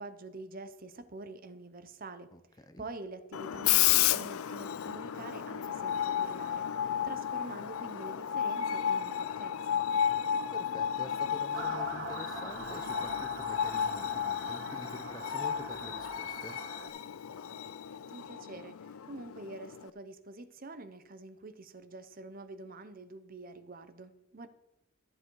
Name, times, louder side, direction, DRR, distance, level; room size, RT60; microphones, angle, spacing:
voice 1, 0.0-2.3 2.8-9.8 18.1-24.5, right 2 dB, 40° right, 10 dB, 0.7 m, -46 dB
voice 2, 2.3-2.8 10.5-16.6, left 1 dB, 15° left, 9 dB, 0.7 m, -47 dB
Screech, 3.3-19.9, left 10 dB, 70° left, 0.4 m, -33 dB
Motor vehicle (road) / Siren, 11.5-16.9, right 3 dB, 55° right, 1.8 m, -43 dB
14.0 x 8.0 x 4.7 m, 0.88 s
head